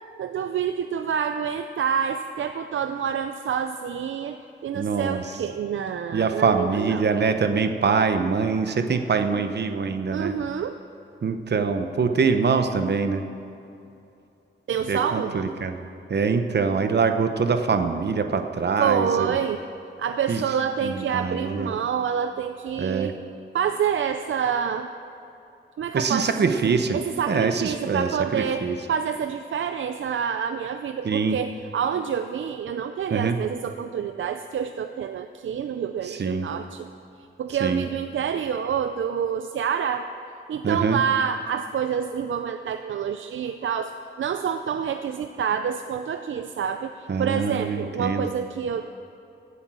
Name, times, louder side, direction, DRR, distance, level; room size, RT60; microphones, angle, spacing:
voice 1, 0.2-4.4 4.6-7.1 10.1-10.8 14.7-15.5 18.8-19.6 20.0-23.1 23.5-24.9 25.8-26.6 26.9-36.9 37.4-40.1 40.5-48.9, right 7 dB, 75° right, 8 dB, 0.5 m, -27 dB
voice 2, 4.7-5.2 6.1-10.3 11.2-13.2 14.9-15.8 16.1-19.3 20.3-20.4 20.8-21.7 22.8-23.1 25.9-27.0 27.3-28.8 31.0-31.4 33.1-33.4 36.0-36.5 37.6-37.8 40.6-41.0 47.1-48.3, right 5 dB, 55° right, 7 dB, 0.9 m, -24 dB
16.0 x 8.3 x 6.2 m, 2.7 s
wide cardioid pair, 95°, 20 cm